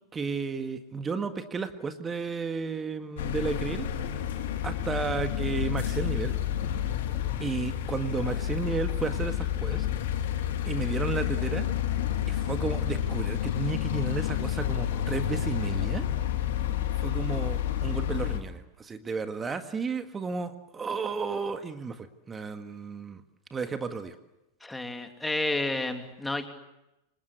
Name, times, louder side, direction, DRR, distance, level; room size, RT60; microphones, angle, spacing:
voice 1, 0.1-4.2 4.6-6.3 7.4-9.8 10.6-11.7 12.3-16.1 16.9-23.2 23.5-24.1, right 5 dB, 15° right, 9 dB, 1.8 m, -33 dB
sound 1, 3.2-18.4, left 10 dB, 55° left, 3.0 m, -30 dB
sound 2, 3.9-11.0, left 7 dB, 40° left, 3.8 m, -44 dB
voice 2, 24.6-26.5, left 2 dB, 5° left, 6 dB, 3.0 m, -30 dB
29.0 x 25.0 x 8.2 m, 0.90 s
figure-of-eight pair, 90°, 0 cm